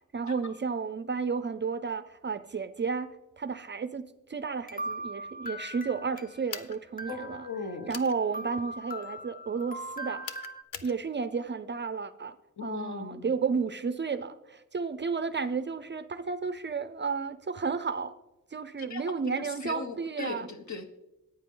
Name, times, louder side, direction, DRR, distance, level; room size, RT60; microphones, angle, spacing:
voice 1, 0.1-7.5 7.9-10.3 10.8-12.3 12.6-18.1 18.5-20.5, right 5 dB, 35° right, 13 dB, 0.5 m, -32 dB
sound 1, 4.7-6.7 7.0-8.0 8.3-10.6, right 1 dB, 25° left, 0.8 m, -40 dB
sound 2, 6.5-6.8 7.9-8.1 10.2-10.9, left 7 dB, 75° left, 0.7 m, -40 dB
voice 2, 7.1-8.0 12.6-13.3 18.8-21.0, left 4 dB, 55° left, 7 dB, 1.2 m, -39 dB
14.5 x 9.0 x 3.8 m, 0.99 s
wide cardioid pair, 125°, 34 cm